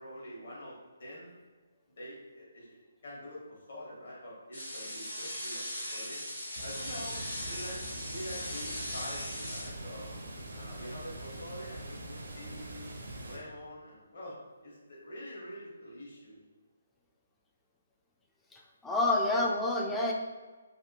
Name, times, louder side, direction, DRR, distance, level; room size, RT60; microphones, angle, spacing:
voice 1, 0.0-1.3 2.0-5.6 5.9-6.2 6.6-10.1 10.5-12.9 13.2-14.4 14.6-16.4, equal, 60° left, -5 dB, 1.2 m, -45 dB
sound 1, 4.5-9.7, equal, 85° left, 1.2 m, -39 dB
Water, 6.6-13.4, right 1 dB, 60° right, 0.6 m, -43 dB
voice 2, 18.5-20.1, left 2 dB, 5° left, -2 dB, 0.3 m, -28 dB
3.4 x 2.2 x 2.8 m, 1.3 s
figure-of-eight pair, 140°, 0 cm